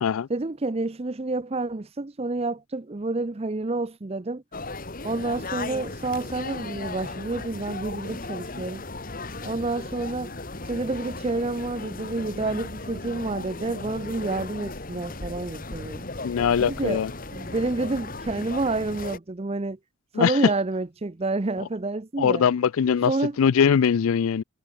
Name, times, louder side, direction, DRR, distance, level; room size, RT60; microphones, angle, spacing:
voice 1, 0.3-4.4 5.0-8.8 9.4-10.3 10.6-16.1 16.6-17.0 17.3-19.8 20.1-22.5 23.0-23.4, right 2 dB, 30° right, 0.6 m, -29 dB
sound 1, 4.5-19.2, left 2 dB, 40° left, 2.1 m, -36 dB
voice 2, 16.2-17.1 20.1-20.4 22.2-23.1 23.4-24.4, left 7 dB, 75° left, 0.4 m, -21 dB
head